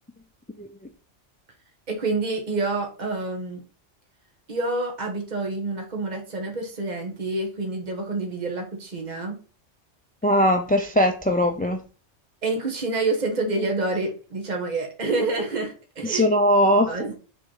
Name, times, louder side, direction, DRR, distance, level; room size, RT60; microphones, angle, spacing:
voice 1, 1.9-3.6 4.5-9.3 12.4-16.3 16.9-17.1, right 3 dB, 35° right, 1.5 m, -28 dB
voice 2, 10.2-11.8 16.0-16.9, equal, 15° left, 0.3 m, -20 dB
6.1 x 3.6 x 5.5 m
omnidirectional pair, 1.3 m